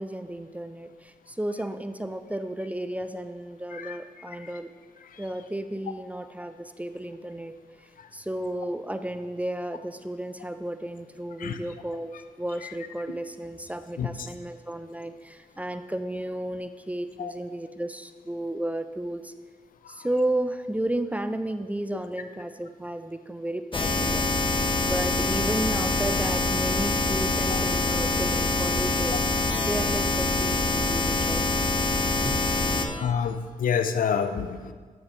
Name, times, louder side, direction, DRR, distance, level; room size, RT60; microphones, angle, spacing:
voice 1, 0.0-4.7 5.2-7.5 7.8-12.1 12.4-19.3 19.9-24.2 24.9-29.3 29.6-31.4 32.2-32.4 32.7-32.9, right 1 dB, 10° right, 9 dB, 0.6 m, -33 dB
voice 2, 14.0-14.3 17.2-17.3 19.8-20.1 27.5-27.6 29.1-29.2 33.0-34.7, left 7 dB, 65° left, 9 dB, 0.6 m, -29 dB
sound 1, 23.7-32.9, left 2 dB, 35° left, 1.3 m, -25 dB
12.0 x 7.1 x 3.2 m, 1.5 s
supercardioid pair, 45°, 15 cm